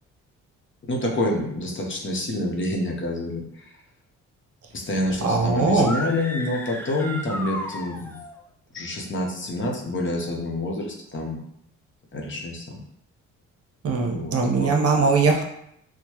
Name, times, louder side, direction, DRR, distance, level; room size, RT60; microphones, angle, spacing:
voice 1, 0.9-3.7 4.7-8.2 8.7-11.4 12.1-12.8 14.1-14.7, left 1 dB, 40° left, 0 dB, 0.8 m, -27 dB
voice 2, 5.2-5.9 13.8-15.4, right 4 dB, 50° right, 1 dB, 0.8 m, -20 dB
sound 1, 5.7-8.3, equal, 5° left, 0.4 m, -34 dB
4.4 x 2.1 x 2.9 m, 0.74 s
cardioid pair, 90°, 30 cm